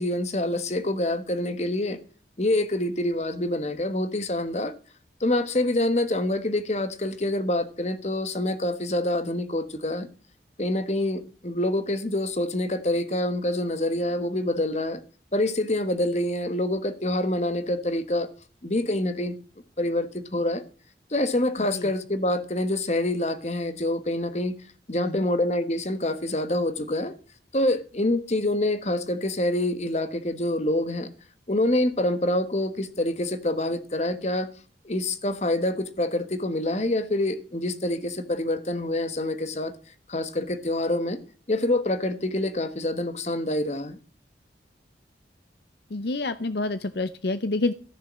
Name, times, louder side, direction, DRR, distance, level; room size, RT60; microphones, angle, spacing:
voice 1, 0.0-2.0 2.4-4.7 5.2-10.1 10.6-15.0 15.3-18.3 18.6-19.4 19.8-20.6 21.1-24.5 24.9-27.1 27.5-31.1 31.5-34.5 34.8-39.7 40.1-41.2 41.5-44.0, left 1 dB, 40° left, 1.3 m, -26 dB
voice 2, 45.9-47.7, left 2 dB, 70° left, 0.7 m, -28 dB
14.0 x 6.8 x 7.5 m
head